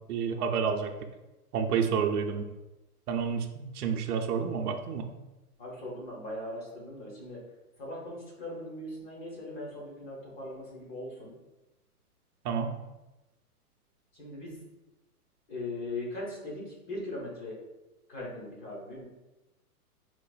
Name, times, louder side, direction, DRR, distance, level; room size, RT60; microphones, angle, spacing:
voice 1, 0.1-0.9 1.5-2.4 3.1-5.1 12.4-12.7, right 6 dB, 75° right, 5 dB, 0.6 m, -29 dB
voice 2, 5.6-7.4 7.8-11.3 14.2-14.6 15.5-17.5 18.1-19.0, left 1 dB, 30° left, -3 dB, 1.1 m, -39 dB
4.2 x 2.5 x 2.3 m, 1.0 s
hypercardioid pair, 140°, 46 cm